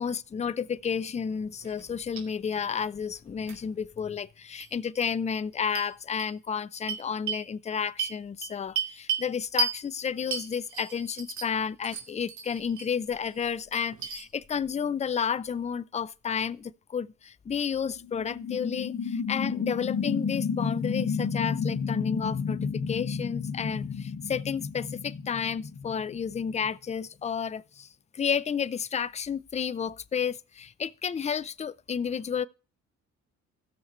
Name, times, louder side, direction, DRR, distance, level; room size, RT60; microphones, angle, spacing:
voice 1, 0.0-32.5, left 7 dB, 25° left, 0.5 m, -31 dB
sound 1, 1.6-1.9 2.2-2.3 3.5-3.6 4.6-4.7 5.0-5.1 5.7-5.9 6.2-6.3 6.9-7.4 8.0-9.3 9.6-9.8 10.3-11.6 11.8-12.9 13.3-14.2, right 5 dB, 70° right, 2.4 m, -33 dB
sound 2, 12.7-12.8 18.0-26.7, left 5 dB, 45° left, 1.7 m, -32 dB
16.5 x 6.6 x 3.1 m
cardioid pair, 90°, 30 cm